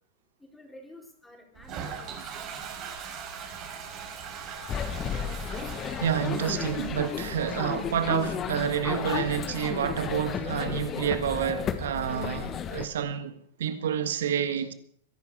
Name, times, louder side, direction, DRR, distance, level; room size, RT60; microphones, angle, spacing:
voice 1, 0.4-2.4, left 1 dB, 5° left, 4.4 m, -50 dB
Toilet flush, 1.5-13.0, right 6 dB, 40° right, 4.9 m, -43 dB
sound 1, 4.5-6.7 7.0-9.5, left 11 dB, 55° left, 2.2 m, -45 dB
sound 2, 4.7-12.9, left 7 dB, 25° left, 1.6 m, -33 dB
voice 2, 6.0-14.7, right 9 dB, 75° right, 1.7 m, -29 dB
22.5 x 11.0 x 4.9 m
hypercardioid pair, 110°, 0 cm